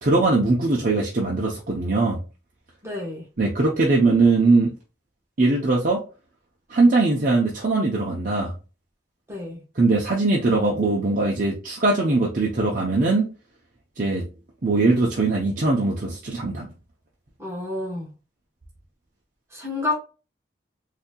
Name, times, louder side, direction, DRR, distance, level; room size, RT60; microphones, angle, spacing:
voice 1, 0.0-2.2 3.4-4.7 5.4-6.0 6.7-8.5 9.8-13.3 14.0-14.2 14.6-16.7, right 3 dB, 50° right, 0.7 m, -21 dB
voice 2, 2.8-3.2 9.3-9.6 17.4-18.1 19.5-20.0, left 2 dB, 15° right, 1.1 m, -29 dB
4.0 x 2.8 x 2.3 m
head